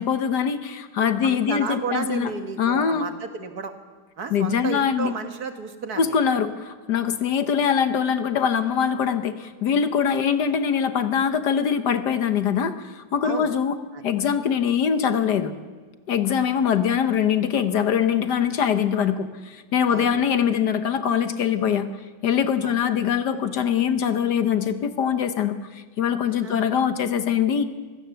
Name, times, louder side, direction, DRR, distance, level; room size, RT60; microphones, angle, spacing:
voice 1, 0.0-2.3 2.6-3.1 4.3-5.1 6.0-13.8 14.0-15.5 16.1-21.9 22.2-27.6, left 7 dB, 65° left, 10 dB, 1.6 m, -23 dB
voice 2, 1.2-3.7 4.2-6.2 13.2-13.5 13.9-14.0 19.9-20.2 22.6-22.8 26.3-26.7, right 5 dB, 55° right, 7 dB, 1.9 m, -32 dB
24.0 x 16.5 x 7.0 m, 1.4 s
omnidirectional pair, 2.0 m